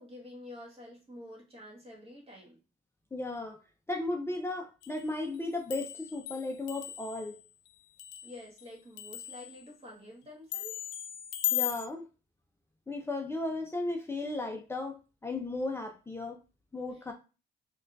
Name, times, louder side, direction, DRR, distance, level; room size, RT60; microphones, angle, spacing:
voice 1, 0.0-2.6 8.2-10.9 16.9-17.0, left 1 dB, 30° right, -2 dB, 1.8 m, -48 dB
voice 2, 3.1-3.6 3.9-7.4 11.5-12.0 12.9-16.4 16.7-17.1, left 2 dB, 10° left, 2 dB, 0.6 m, -35 dB
sound 1, 4.8-5.1 5.4-8.7 9.0-9.7 10.5-11.9, left 13 dB, 70° left, 0.4 m, -37 dB
4.2 x 2.3 x 2.6 m, 0.31 s
cardioid pair, 90°, 20 cm